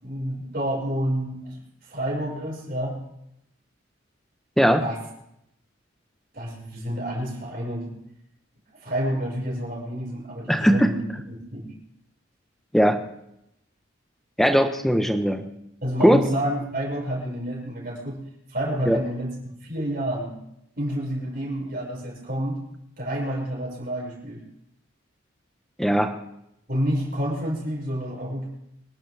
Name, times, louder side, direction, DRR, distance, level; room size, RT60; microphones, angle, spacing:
voice 1, 0.0-3.0 4.8-5.0 6.3-8.0 8.7-11.7 15.8-18.2 18.5-19.3 19.6-20.4 20.8-22.6 23.0-24.4 26.7-28.5, equal, 45° right, -3 dB, 5.9 m, -29 dB
voice 2, 10.5-10.9 12.7-13.0 14.4-15.4 16.0-16.2 18.9-19.0 25.8-26.1, equal, ahead, 6 dB, 1.1 m, -19 dB
25.5 x 12.0 x 3.6 m, 0.80 s
head